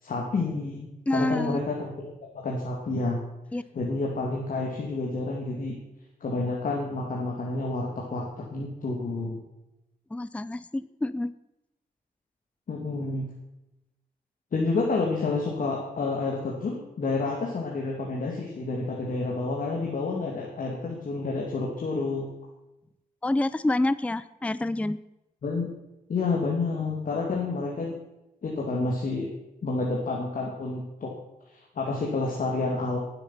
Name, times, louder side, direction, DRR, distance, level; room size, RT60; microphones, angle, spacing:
voice 1, 0.0-3.2 3.7-5.8 6.2-9.4 12.7-13.3 14.5-22.3 25.4-25.7 26.1-27.9 28.4-29.3 29.6-31.1 31.5-33.0, left 3 dB, 60° left, -2 dB, 2.8 m, -29 dB
voice 2, 1.1-1.6 3.5-3.6 10.1-11.3 23.2-25.0, left 2 dB, 10° left, 16 dB, 0.5 m, -27 dB
19.0 x 9.0 x 5.9 m, 0.92 s
wide cardioid pair, 115°, 16 cm